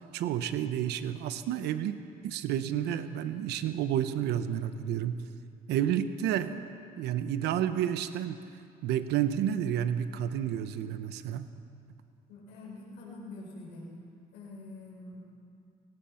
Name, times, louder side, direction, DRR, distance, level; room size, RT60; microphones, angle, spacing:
voice 1, 0.1-1.9 2.2-5.2 5.7-6.7 7.0-8.4 8.8-11.5, right 10 dB, 80° right, 11 dB, 1.0 m, -30 dB
voice 2, 12.3-13.9 14.3-15.2, left 2 dB, 90° left, -3 dB, 5.7 m, -45 dB
28.0 x 16.5 x 5.8 m, 2.4 s
cardioid pair, 110°, 17 cm